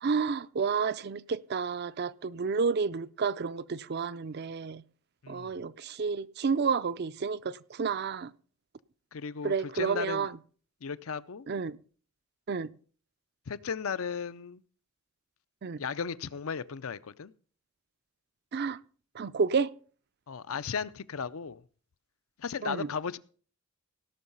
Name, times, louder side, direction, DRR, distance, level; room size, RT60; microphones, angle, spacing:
voice 1, 0.0-4.8 5.3-8.3 9.4-10.3 11.5-11.8 12.5-12.7 15.6-15.8 18.5-18.8 19.1-19.7 22.6-22.9, right 5 dB, 50° right, 0.5 m, -30 dB
voice 2, 9.1-10.3 10.8-11.5 13.5-14.6 15.8-17.3 20.3-21.6 22.4-23.2, left 6 dB, 75° left, 0.6 m, -35 dB
17.0 x 6.4 x 5.5 m
head